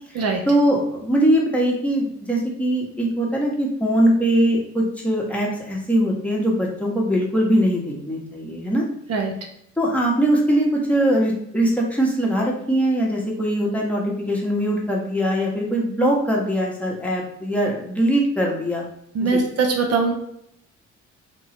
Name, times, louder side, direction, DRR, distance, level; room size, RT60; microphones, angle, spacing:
voice 1, 0.1-8.8 9.8-18.8 19.2-19.4, right 1 dB, 5° left, -3 dB, 0.9 m, -21 dB
voice 2, 19.1-20.1, right 4 dB, 55° right, 2 dB, 0.7 m, -21 dB
2.9 x 2.3 x 4.2 m, 0.75 s
cardioid pair, 90°, 30 cm